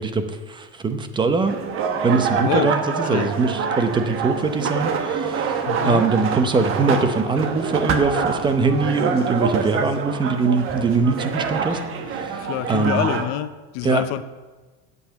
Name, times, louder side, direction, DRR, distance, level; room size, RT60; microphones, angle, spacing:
voice 1, 0.0-1.6 2.0-11.8 12.1-13.1 13.8-14.0, right 4 dB, 15° right, 8 dB, 0.7 m, -22 dB
sound 1, 1.5-13.3, right 6 dB, 35° right, 1.2 m, -26 dB
voice 2, 2.3-2.7 3.0-3.3 5.7-6.0 12.4-14.2, left 13 dB, 50° left, 13 dB, 0.6 m, -26 dB
8.8 x 8.1 x 8.8 m, 1.3 s
cardioid pair, 165°, 34 cm